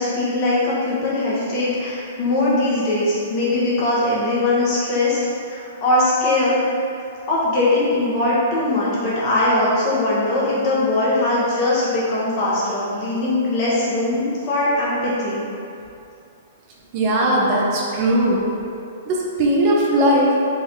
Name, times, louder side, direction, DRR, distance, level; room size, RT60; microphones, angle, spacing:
voice 1, 0.0-5.2 5.5-6.7 7.3-15.4, left 2 dB, 40° left, -8 dB, 1.2 m, -20 dB
voice 2, 16.9-18.4 19.1-20.4, right 1 dB, 45° right, -3 dB, 0.6 m, -18 dB
3.6 x 2.7 x 3.3 m, 2.6 s
hypercardioid pair, 130°, 0 cm